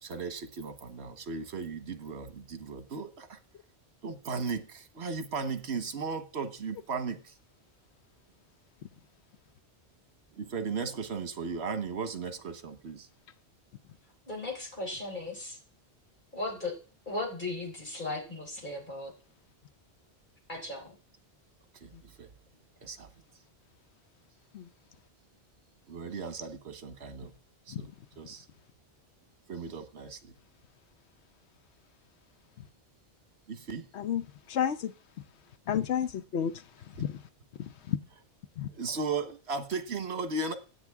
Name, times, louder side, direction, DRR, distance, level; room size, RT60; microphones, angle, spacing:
voice 1, 0.0-3.4 4.0-7.3 10.3-13.1 21.8-22.3 22.8-23.1 25.9-27.3 27.7-27.9 28.2-28.4 29.5-30.3 33.5-33.9 38.7-40.6, right 4 dB, 75° right, 1.4 m, -36 dB
voice 2, 14.3-15.6 16.3-16.7 17.1-19.1 20.5-21.0, left 2 dB, 45° left, 3.9 m, -36 dB
voice 3, 34.5-34.9 35.7-36.5 37.0-37.1 37.9-38.0 38.6-38.7, left 9 dB, 80° left, 1.0 m, -30 dB
16.5 x 10.0 x 3.6 m
omnidirectional pair, 1.1 m